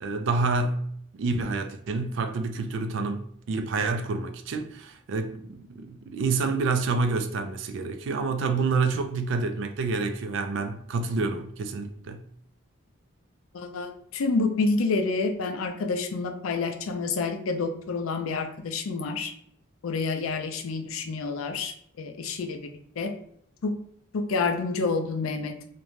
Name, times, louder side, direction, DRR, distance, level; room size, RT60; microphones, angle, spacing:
voice 1, 0.0-0.8 1.2-12.2, right 4 dB, 65° right, 0.3 m, -28 dB
voice 2, 13.5-19.3 19.8-22.6 23.0-23.1 23.6-23.7 24.1-25.5, left 3 dB, 90° left, 0.4 m, -28 dB
2.5 x 2.1 x 3.1 m
head